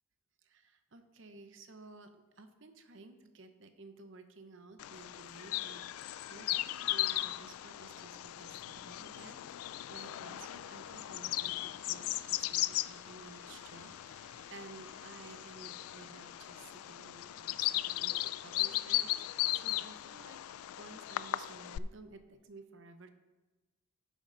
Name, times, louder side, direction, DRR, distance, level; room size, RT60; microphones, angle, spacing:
voice 1, 0.4-5.9 6.3-20.4 20.8-23.1, right 3 dB, 60° right, 8 dB, 0.8 m, -54 dB
Bird vocalization bird call bird song, 4.8-21.8, left 15 dB, 85° left, 0.3 m, -37 dB
sound 1, 10.6-16.8, right 1 dB, 15° right, 1.8 m, -61 dB
10.5 x 7.4 x 3.9 m, 1.2 s
head